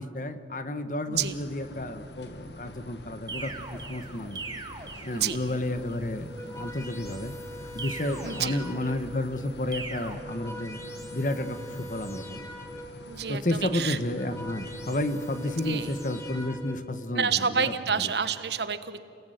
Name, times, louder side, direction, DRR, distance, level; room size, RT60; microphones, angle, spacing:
voice 1, 0.0-4.4 5.0-7.3 7.7-10.8 11.1-12.5 13.3-18.1, left 1 dB, 45° left, 10 dB, 1.4 m, -31 dB
sound 1, 1.1-16.5, left 1 dB, 80° left, 1.8 m, -46 dB
voice 2, 1.1-1.4 5.1-5.4 8.2-8.6 13.1-14.0 15.4-15.9 17.1-19.0, right 6 dB, 75° right, 12 dB, 1.2 m, -29 dB
sound 2, 3.3-5.7 7.8-9.2 9.7-10.2, right 4 dB, 25° right, 1.9 m, -40 dB
sound 3, 6.2-9.2 10.0-13.1 13.9-16.8, equal, 15° left, 2.4 m, -43 dB
29.5 x 18.5 x 9.4 m, 2.6 s
head